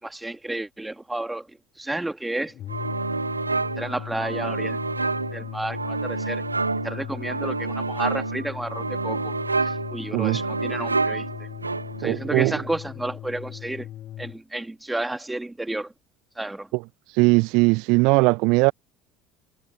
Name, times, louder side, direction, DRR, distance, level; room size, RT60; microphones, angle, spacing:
voice 1, 0.0-2.5 3.8-4.8 5.3-6.4 6.8-11.5 12.0-13.9 14.2-15.9 16.4-16.7, right 2 dB, 10° right, 2.5 m, -31 dB
sound 1, 2.5-14.4, left 12 dB, 50° left, 2.0 m, -38 dB
sound 2, 2.7-12.2, right 3 dB, 90° right, 1.7 m, -28 dB
voice 2, 12.0-12.5 17.1-18.7, right 27 dB, 60° right, 0.6 m, -19 dB
figure-of-eight pair, 60°, 0 cm